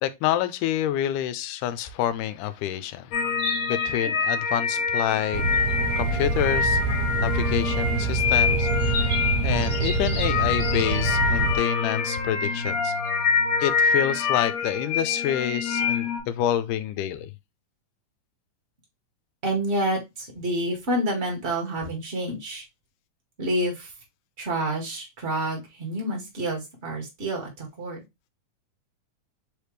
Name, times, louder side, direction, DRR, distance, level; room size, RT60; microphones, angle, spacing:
voice 1, 0.0-3.2 3.7-5.4 6.0-6.8 7.1-13.0 13.6-17.3, left 11 dB, 85° left, 2.1 m, -28 dB
sound 1, 3.1-16.2, left 5 dB, 60° left, 2.5 m, -26 dB
sound 2, 5.3-11.6, right 4 dB, 80° right, 2.0 m, -26 dB
voice 2, 19.4-22.6 23.4-23.9 24.4-28.0, right 1 dB, 35° right, 1.2 m, -28 dB
4.8 x 3.4 x 3.1 m
omnidirectional pair, 3.6 m